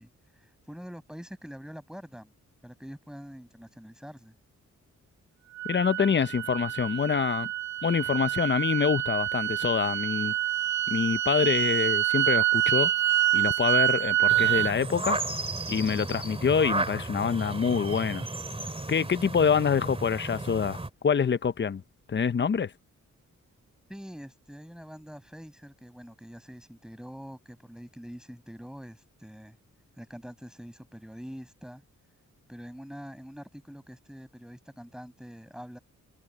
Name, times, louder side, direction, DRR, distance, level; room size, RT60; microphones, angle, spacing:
voice 1, 0.0-2.3 2.6-4.4 23.9-29.6 30.0-31.8 32.5-35.8, equal, ahead, 6.7 m, -45 dB
sound 1, 5.6-14.7, right 13 dB, 65° right, 1.9 m, -26 dB
voice 2, 5.7-7.5 7.8-10.3 10.9-12.9 13.3-15.2 15.7-18.3 18.9-21.8 22.1-22.7, left 6 dB, 35° left, 0.7 m, -26 dB
sound 2, 14.3-20.9, right 2 dB, 20° right, 2.7 m, -34 dB
cardioid pair, 85°, 30 cm